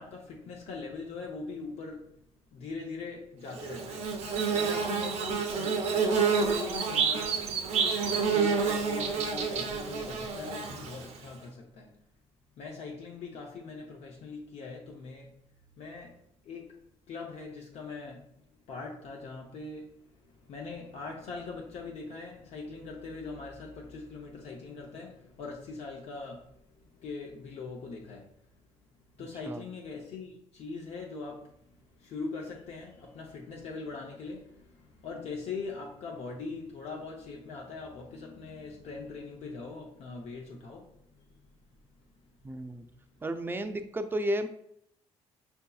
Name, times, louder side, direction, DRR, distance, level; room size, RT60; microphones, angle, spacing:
voice 1, 0.0-2.1 2.5-4.1 4.5-7.4 7.8-12.0 12.6-15.4 15.8-16.8 17.1-18.3 18.7-28.3 29.2-41.5, left 4 dB, 70° left, 0.6 m, -42 dB
Bird / Buzz, 3.6-11.3, right 5 dB, 70° right, 0.6 m, -29 dB
voice 2, 42.4-42.9 43.2-44.5, right 1 dB, 20° right, 0.3 m, -32 dB
5.5 x 2.6 x 2.3 m
cardioid pair, 110°, 12 cm